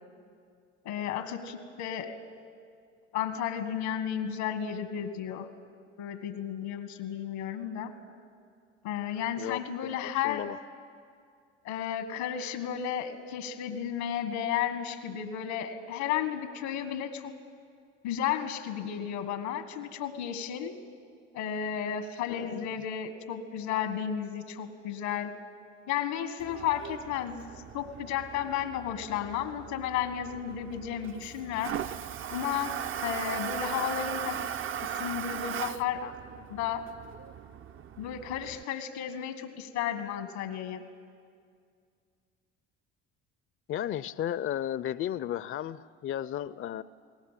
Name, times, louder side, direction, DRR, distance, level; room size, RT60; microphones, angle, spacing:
voice 1, 0.8-2.2 3.1-5.5 6.0-7.9 8.8-10.4 11.6-17.3 18.0-20.8 21.3-25.3 25.9-27.4 27.7-31.8 32.3-32.8 33.0-36.1 36.5-36.9 38.0-40.8, left 9 dB, 85° left, 9 dB, 1.7 m, -33 dB
voice 2, 9.4-10.6 22.3-22.7 43.7-46.8, left 11 dB, 40° left, 17 dB, 0.6 m, -34 dB
Toilet flush, 26.4-38.6, right 9 dB, 40° right, 0.6 m, -38 dB
28.5 x 19.0 x 7.5 m, 2.2 s
hypercardioid pair, 70°, 31 cm